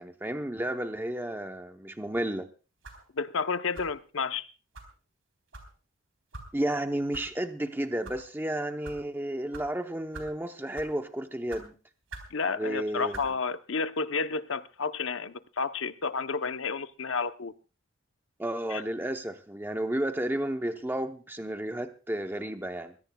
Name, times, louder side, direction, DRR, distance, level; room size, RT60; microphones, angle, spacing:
voice 1, 0.0-2.5 6.5-11.7 12.6-13.2 18.4-22.9, right 1 dB, 10° right, 0.8 m, -32 dB
sound 1, 2.8-3.1 3.7-4.0 4.7-4.9 5.5-5.7 6.3-6.5 7.1-7.3 7.9-8.2 8.8-9.0 9.5-9.7 10.1-10.4 10.7-11.0 11.5-11.6 12.1-12.3 13.1-13.3, right 3 dB, 85° right, 3.7 m, -44 dB
voice 2, 3.1-4.5 12.3-17.5 18.7-18.8, left 4 dB, 75° left, 0.8 m, -31 dB
23.0 x 17.0 x 2.3 m
head